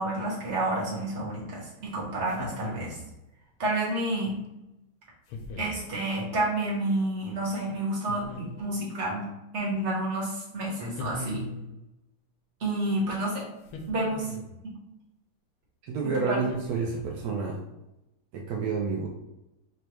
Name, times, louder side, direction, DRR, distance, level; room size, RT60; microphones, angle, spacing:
voice 1, 0.0-3.0 3.6-4.4 5.6-9.3 9.5-11.4 12.6-13.4 13.9-14.3 16.0-16.4, right 1 dB, 40° right, -4 dB, 1.2 m, -29 dB
sound 1, 2.3-3.1 5.3-5.9 8.1-8.9 11.0-11.8 13.6-14.6 16.5-17.2, left 3 dB, 85° left, 1.5 m, -40 dB
voice 2, 15.8-17.6 18.3-19.1, right 5 dB, 80° right, -1 dB, 0.8 m, -29 dB
3.9 x 2.3 x 4.5 m, 0.91 s
omnidirectional pair, 2.4 m